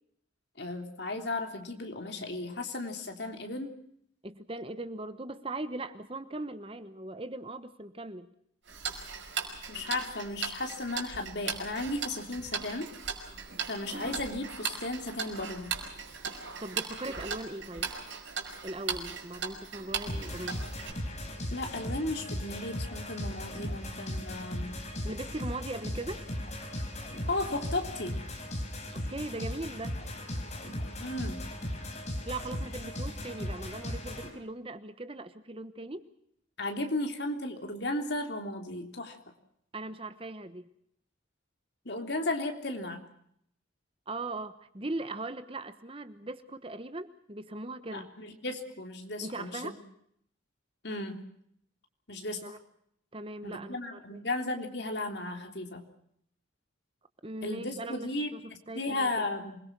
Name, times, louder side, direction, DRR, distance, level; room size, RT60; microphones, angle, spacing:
voice 1, 0.6-3.7 9.7-12.9 13.7-15.8 21.5-24.8 27.3-28.2 31.0-31.4 36.6-39.2 41.8-43.0 47.9-49.7 50.8-51.2 52.1-52.5 53.4-55.8 57.4-59.6, left 2 dB, 55° left, 5 dB, 3.4 m, -35 dB
voice 2, 4.2-8.3 16.6-17.9 18.6-20.8 25.0-26.2 29.1-30.0 32.2-36.0 39.7-40.7 44.1-48.1 49.2-49.8 52.4-52.6 53.1-54.3 57.2-59.2, right 2 dB, 25° right, 11 dB, 1.1 m, -39 dB
Tick-tock, 8.7-20.9, right 6 dB, 65° right, 5.4 m, -38 dB
sound 1, 20.1-34.3, left 1 dB, 35° left, 4.9 m, -37 dB
27.0 x 21.0 x 6.1 m, 0.71 s
head